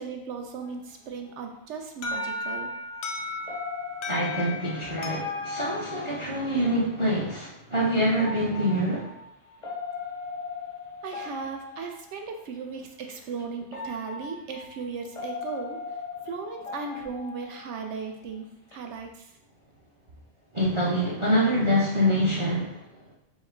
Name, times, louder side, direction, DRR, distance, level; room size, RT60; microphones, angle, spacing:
voice 1, 0.0-2.7 11.0-15.8 16.2-19.3, right 5 dB, 70° right, 3 dB, 0.9 m, -37 dB
sound 1, 0.6-0.7 2.1-6.8 8.1-12.3 13.1-13.2 13.7-18.1 18.4-18.8, left 4 dB, 35° left, 0.6 m, -38 dB
Alarm, 2.0-6.8, left 2 dB, 85° left, 1.1 m, -36 dB
voice 2, 4.1-9.2 20.5-22.8, equal, 30° right, -5 dB, 0.6 m, -25 dB
5.1 x 2.1 x 3.7 m, 0.81 s
omnidirectional pair, 1.3 m